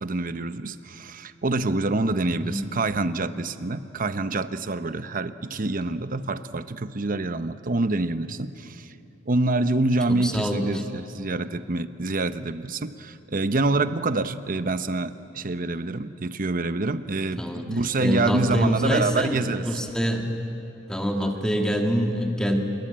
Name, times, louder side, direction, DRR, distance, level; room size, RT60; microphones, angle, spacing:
voice 1, 0.0-8.9 9.3-19.8 21.2-21.3, right 2 dB, 45° right, 11 dB, 0.9 m, -26 dB
voice 2, 2.3-2.7 10.1-10.7 17.4-17.7 18.0-19.4 19.6-20.2 20.9-22.6, equal, 5° left, 2 dB, 2.0 m, -25 dB
27.0 x 23.0 x 8.9 m, 2.8 s
head